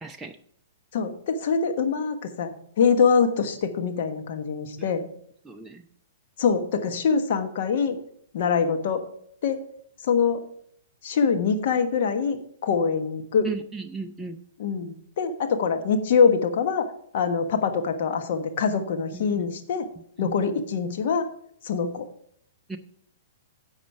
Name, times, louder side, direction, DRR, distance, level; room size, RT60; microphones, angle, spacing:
voice 1, 0.0-0.4 4.8-4.9 5.4-5.8 13.4-14.4 19.1-19.5 20.2-20.3 22.7-22.8, right 4 dB, 10° right, 4 dB, 0.6 m, -35 dB
voice 2, 0.9-5.0 6.4-8.0 8.3-9.0 9.4-9.6 10.0-10.4 11.0-13.5 14.6-16.9 17.1-19.9 20.2-21.3 21.6-22.1, left 6 dB, 60° left, 7 dB, 1.3 m, -24 dB
10.5 x 6.5 x 4.7 m, 0.66 s
hypercardioid pair, 120°, 0 cm